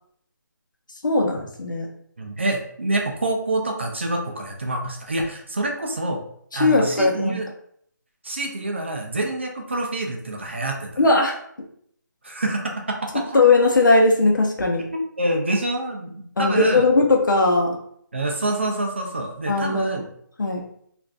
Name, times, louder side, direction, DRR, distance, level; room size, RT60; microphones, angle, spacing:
voice 1, 1.0-1.9 6.5-7.4 11.0-11.3 13.3-14.9 16.4-17.8 19.5-20.0 20.4-20.6, left 3 dB, 70° left, 1 dB, 0.7 m, -18 dB
voice 2, 2.2-6.2 6.5-7.5 8.2-11.0 12.2-13.2 14.9-16.9 18.1-20.0, right 2 dB, 35° right, 1 dB, 0.4 m, -26 dB
2.5 x 2.5 x 3.2 m, 0.66 s
hypercardioid pair, 180°, 11 cm